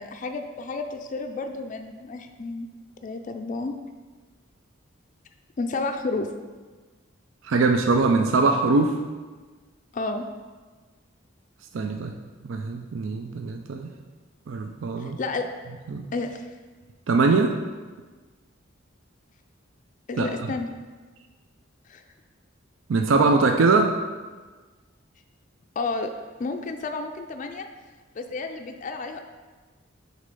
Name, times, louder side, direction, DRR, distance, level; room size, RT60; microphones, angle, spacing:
voice 1, 0.0-2.7 3.0-3.7 5.6-6.3 9.9-10.2 15.0-15.5 16.1-16.5 20.1-20.7 21.9-22.0 25.8-26.1 26.4-27.7 28.2-29.2, left 3 dB, 40° left, 5 dB, 0.4 m, -31 dB
voice 2, 7.4-9.0 11.7-12.1 12.4-13.9 14.5-15.2 15.9-16.1 17.1-17.5 20.2-20.3 22.9-23.9, right 3 dB, 75° right, 4 dB, 0.4 m, -21 dB
6.5 x 3.2 x 5.3 m, 1.4 s
head